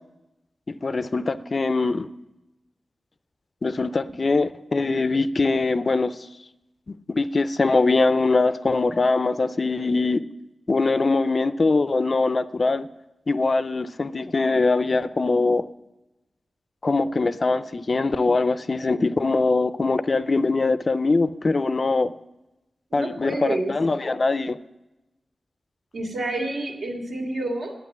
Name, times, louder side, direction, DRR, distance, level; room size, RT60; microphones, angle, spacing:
voice 1, 0.8-2.1 3.6-6.2 6.9-10.2 10.7-12.9 13.3-15.6 16.8-22.1 22.9-24.6, left 3 dB, 40° left, 14 dB, 0.4 m, -22 dB
voice 2, 22.9-23.7 25.9-27.7, right 2 dB, 75° right, 0 dB, 2.2 m, -28 dB
10.5 x 8.1 x 7.3 m, 0.98 s
wide cardioid pair, 135°, 0 cm